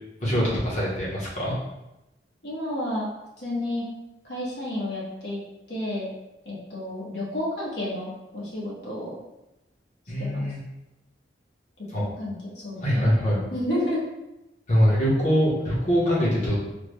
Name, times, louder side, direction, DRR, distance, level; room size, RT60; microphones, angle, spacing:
voice 1, 0.2-1.5 10.1-10.6 11.9-12.0 12.8-13.4 14.7-16.5, equal, 45° left, -6 dB, 1.1 m, -23 dB
voice 2, 2.4-3.1 3.4-3.9 4.2-5.4 5.7-6.1 6.4-9.1 10.2-10.5 12.2-13.1 13.5-14.0, left 1 dB, 70° left, -5 dB, 1.1 m, -31 dB
3.5 x 2.1 x 3.2 m, 0.95 s
head